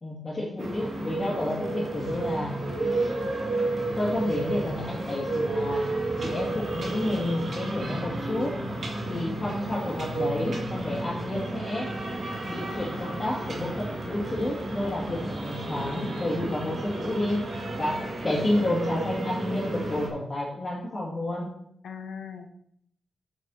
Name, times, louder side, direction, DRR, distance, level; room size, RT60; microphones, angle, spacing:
voice 1, 0.0-2.5 2.8-3.1 3.9-5.8 6.2-8.6 9.1-11.9 12.5-17.4 17.8-21.5, left 1 dB, 30° left, -7 dB, 2.4 m, -30 dB
sound 1, 0.6-20.1, right 2 dB, 50° right, 2.1 m, -32 dB
voice 2, 9.1-9.4 21.8-22.5, left 6 dB, 85° left, 5 dB, 0.9 m, -40 dB
8.7 x 6.2 x 4.3 m, 0.69 s
wide cardioid pair, 100°, 0 cm